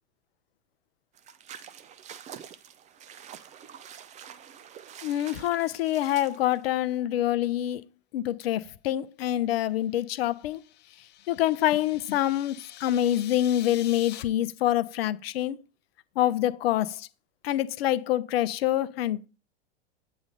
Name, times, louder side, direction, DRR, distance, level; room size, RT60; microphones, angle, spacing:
sound 1, 1.1-6.8, right 9 dB, 20° right, 0.5 m, -47 dB
voice 1, 5.0-7.8 8.1-10.6 11.3-15.6 16.2-17.1 17.4-19.2, left 13 dB, 65° left, 0.7 m, -26 dB
sound 2, 10.1-14.2, left 12 dB, 30° left, 0.7 m, -46 dB
8.1 x 3.1 x 5.1 m
hypercardioid pair, 100°, 32 cm